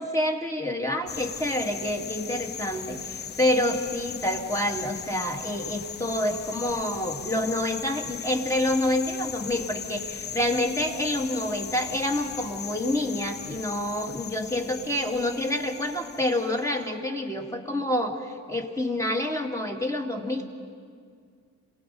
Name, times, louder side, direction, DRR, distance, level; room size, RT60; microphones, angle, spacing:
voice 1, 0.0-20.5, left 1 dB, 10° left, 2 dB, 2.2 m, -28 dB
sound 1, 1.1-16.8, left 8 dB, 35° left, 0.5 m, -38 dB
27.0 x 18.5 x 5.5 m, 2.1 s
cardioid pair, 90°, 30 cm